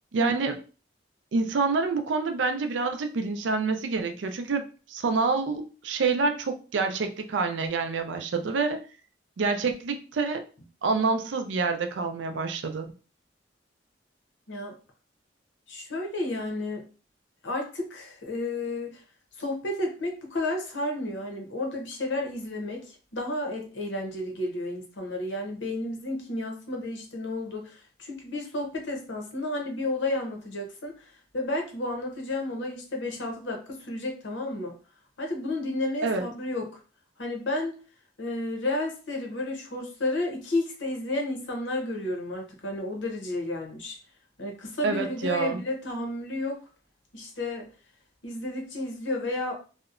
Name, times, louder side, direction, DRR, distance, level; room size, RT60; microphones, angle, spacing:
voice 1, 0.1-0.6 1.3-8.8 9.4-10.4 10.8-12.9 36.0-36.2 44.8-45.6, right 4 dB, 80° right, 7 dB, 0.4 m, -27 dB
voice 2, 15.7-16.9 17.4-19.0 19.4-34.7 35.2-36.7 37.2-37.8 38.2-44.0 44.4-46.6 47.1-47.7 48.2-49.5, left 2 dB, 90° left, 2 dB, 0.8 m, -32 dB
2.7 x 2.1 x 2.4 m, 0.36 s
head